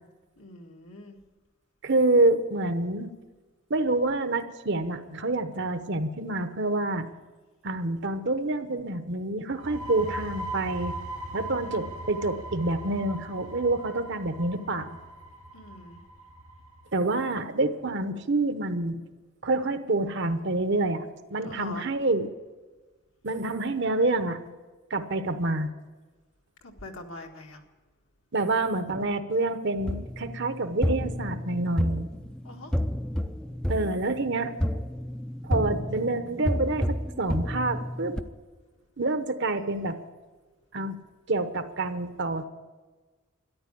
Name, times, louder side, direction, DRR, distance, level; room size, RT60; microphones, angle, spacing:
voice 1, 0.4-1.2 11.5-11.9 15.5-16.0 21.4-21.9 26.6-27.6 32.4-32.7, left 2 dB, 70° left, 2 dB, 1.8 m, -43 dB
voice 2, 1.8-3.1 3.7-7.1 7.6-11.0 11.3-15.0 16.9-19.0 19.4-21.0 21.3-22.3 23.2-24.4 24.9-25.7 28.3-32.1 33.7-34.5 35.4-38.2 39.0-40.0 40.7-41.0 41.3-42.4, right 2 dB, 55° right, 9 dB, 0.9 m, -27 dB
sound 1, 9.5-17.0, right 1 dB, 85° right, 2.2 m, -39 dB
sound 2, 29.8-38.2, equal, 5° left, 0.5 m, -30 dB
13.5 x 11.0 x 8.5 m, 1.3 s
head